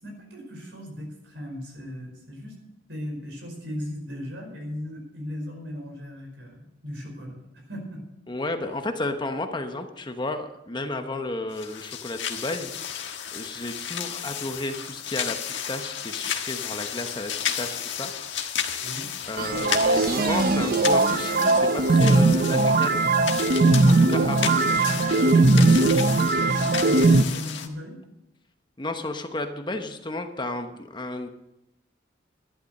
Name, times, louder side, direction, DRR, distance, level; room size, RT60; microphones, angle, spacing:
voice 1, 0.0-2.6 2.9-8.0 18.8-19.1 25.1-25.9 26.6-28.0, equal, 70° right, 2 dB, 5.0 m, -37 dB
voice 2, 8.3-12.7 13.3-18.1 19.3-23.0 23.9-24.5 25.0-25.9 28.8-31.3, left 2 dB, 25° left, 6 dB, 1.0 m, -32 dB
sound 1, 11.5-27.7, left 9 dB, 80° left, 1.4 m, -33 dB
sound 2, 19.4-27.2, right 2 dB, 50° right, 0.6 m, -19 dB
11.5 x 11.5 x 6.5 m, 0.89 s
head